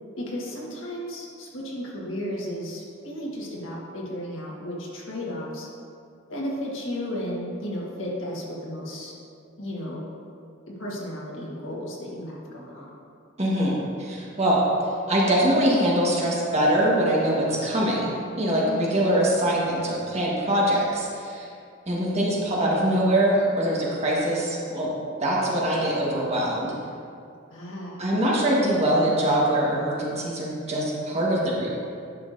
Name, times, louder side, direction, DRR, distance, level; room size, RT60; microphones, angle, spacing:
voice 1, 0.2-5.7 6.3-9.1 9.6-10.0 10.8-12.9 18.6-19.0 27.5-28.0, equal, 75° left, -4 dB, 1.6 m, -34 dB
voice 2, 13.4-14.6 15.1-21.5 21.9-24.9 25.2-26.7 28.0-31.7, right 1 dB, 35° right, -5 dB, 1.5 m, -23 dB
10.5 x 6.5 x 2.7 m, 2.4 s
head